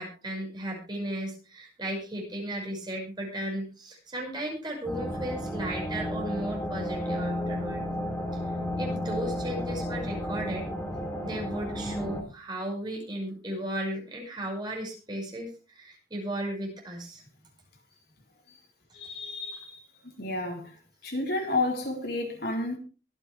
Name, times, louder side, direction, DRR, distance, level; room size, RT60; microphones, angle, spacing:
voice 1, 0.0-7.8 8.8-10.7 11.2-15.5 15.8-17.2 19.0-19.1, right 1 dB, 25° right, 5.8 m, -35 dB
sound 1, 4.9-12.2, equal, 10° left, 3.1 m, -32 dB
voice 2, 18.9-19.8 20.2-20.8 21.0-22.8, left 2 dB, 55° left, 4.1 m, -31 dB
23.5 x 8.3 x 3.4 m
head